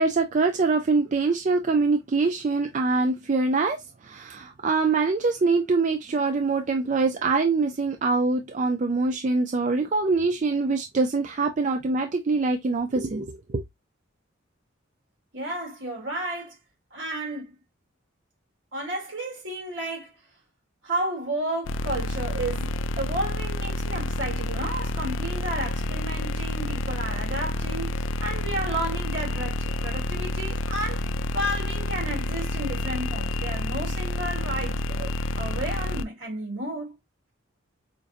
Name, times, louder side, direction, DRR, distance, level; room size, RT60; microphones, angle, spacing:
voice 1, 0.0-13.6, right 3 dB, 40° right, 0.4 m, -24 dB
voice 2, 15.3-16.6 16.9-17.5 18.7-20.1 20.8-35.1 35.4-36.9, right 1 dB, 75° right, 2.7 m, -32 dB
sound 1, 21.7-36.0, left 2 dB, 85° left, 0.4 m, -29 dB
5.1 x 2.5 x 2.4 m
head